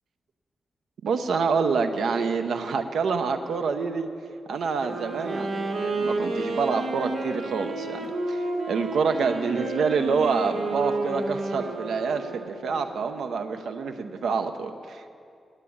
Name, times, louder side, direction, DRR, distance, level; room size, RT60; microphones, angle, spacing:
voice 1, 1.0-4.1 4.5-15.1, right 5 dB, 90° right, 7 dB, 0.8 m, -27 dB
Wind instrument woodwind instrument, 4.7-12.8, right 2 dB, 65° right, 1.8 m, -31 dB
9.8 x 9.1 x 8.5 m, 2.4 s
wide cardioid pair, 175°, 0 cm